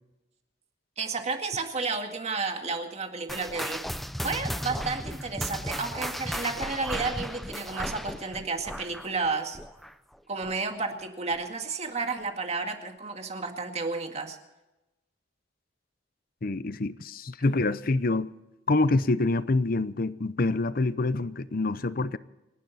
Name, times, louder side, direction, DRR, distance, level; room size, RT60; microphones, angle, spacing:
voice 1, 1.0-3.8 4.2-9.6 10.3-14.4, right 4 dB, 35° right, 2.0 m, -32 dB
sound 1, 3.3-10.1 10.4-10.7 11.3-11.4 12.2-12.3, equal, ahead, 0.6 m, -35 dB
voice 2, 16.4-18.3 18.7-22.2, left 2 dB, 50° left, 0.7 m, -26 dB
28.5 x 11.5 x 4.2 m
head